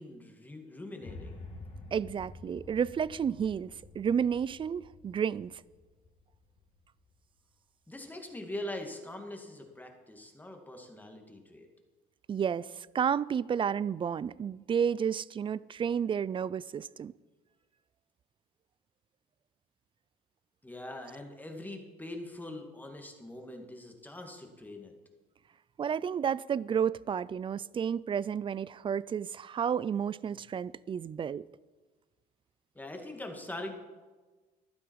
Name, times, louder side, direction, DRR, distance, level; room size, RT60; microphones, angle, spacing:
voice 1, 0.0-1.4 7.9-11.7 20.6-24.9 32.7-33.7, left 1 dB, 10° left, 2.3 m, -43 dB
sound 1, 1.0-7.2, left 2 dB, 40° left, 2.7 m, -49 dB
voice 2, 1.9-5.5 12.3-17.1 25.8-31.5, right 7 dB, 30° right, 0.4 m, -31 dB
14.5 x 12.0 x 4.8 m
cardioid pair, 110°, 17 cm